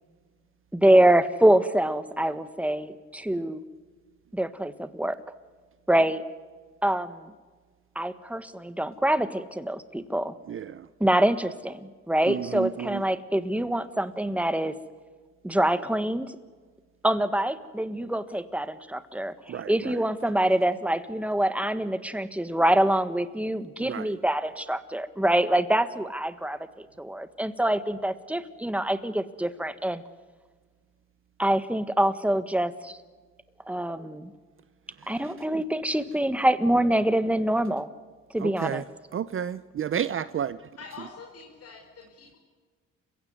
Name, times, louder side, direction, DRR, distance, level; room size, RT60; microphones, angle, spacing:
voice 1, 0.7-3.6 4.3-5.2 5.9-6.2 6.8-7.3 7.9-10.3 11.0-14.7 15.4-16.3 17.0-26.6 27.0-30.0 31.4-33.0 33.7-34.3 35.1-37.9 38.3-38.8, right 1 dB, 5° right, 12 dB, 1.5 m, -25 dB
voice 2, 12.3-13.0 19.5-19.7 23.8-24.1 38.4-38.8 39.1-40.6, right 9 dB, 45° right, 15 dB, 0.7 m, -31 dB
voice 3, 40.8-42.4, left 5 dB, 55° left, 1 dB, 5.0 m, -45 dB
29.5 x 16.0 x 9.5 m, 1.5 s
cardioid pair, 110°, 29 cm